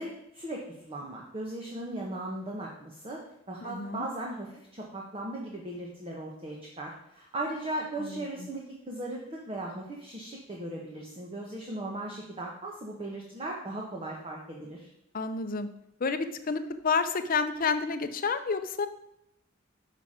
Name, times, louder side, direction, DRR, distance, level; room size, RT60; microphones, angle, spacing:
voice 1, 0.0-3.2 3.5-14.9, right 1 dB, 30° right, -1 dB, 0.9 m, -38 dB
voice 2, 3.6-4.1 8.0-8.2 15.1-15.7 16.0-18.9, left 5 dB, 45° left, 9 dB, 0.6 m, -29 dB
5.8 x 5.8 x 4.9 m, 0.77 s
head